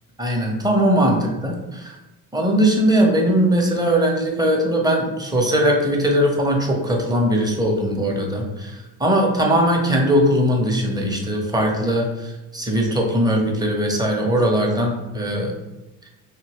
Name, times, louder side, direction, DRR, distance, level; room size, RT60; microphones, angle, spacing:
voice 1, 0.2-2.0 2.3-15.5, equal, 10° right, 0 dB, 0.7 m, -20 dB
2.8 x 2.6 x 2.9 m, 1.0 s
hypercardioid pair, 60°, 47 cm